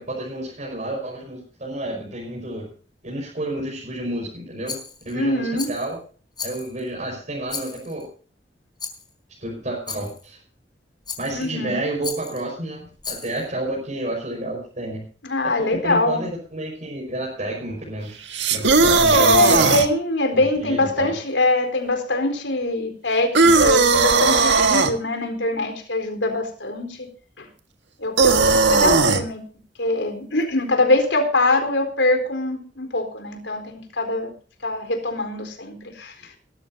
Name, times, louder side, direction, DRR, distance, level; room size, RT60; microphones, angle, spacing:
voice 1, 0.0-2.6 3.0-4.8 5.1-6.0 6.4-8.0 9.4-10.4 11.2-15.0 15.4-15.5 15.8-18.2 18.5-19.7 20.3-21.1, right 1 dB, 45° right, -2 dB, 5.4 m, -30 dB
Rattle, 4.7-5.2 5.6-5.9 6.4-6.9 7.5-8.0 8.8-9.1 9.9-10.3 11.1-11.5 12.0-12.4 13.0-13.5, left 5 dB, 25° left, 4.4 m, -35 dB
voice 2, 5.1-5.7 11.3-11.8 15.2-16.3 19.1-27.1 27.4-27.5 28.0-29.4 29.8-34.3 34.6-36.4, left 2 dB, 90° left, 5 dB, 4.1 m, -23 dB
sound 1, 18.3-19.9 23.3-24.9 28.2-29.2, right 4 dB, 85° right, 1.7 m, -16 dB
20.0 x 13.0 x 2.8 m, 0.41 s
head